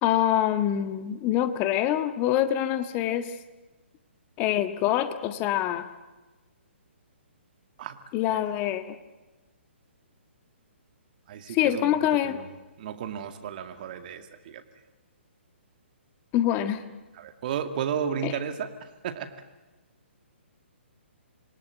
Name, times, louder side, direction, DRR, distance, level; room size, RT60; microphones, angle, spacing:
voice 1, 0.0-3.3 4.4-5.9 8.1-9.0 11.5-12.4 16.3-16.8 18.2-18.3, left 12 dB, 25° left, 10 dB, 1.5 m, -25 dB
voice 2, 11.3-12.5 12.8-14.6 17.1-19.3, right 8 dB, 45° right, 8 dB, 2.2 m, -33 dB
27.5 x 21.5 x 9.3 m, 1.2 s
figure-of-eight pair, 130°, 7 cm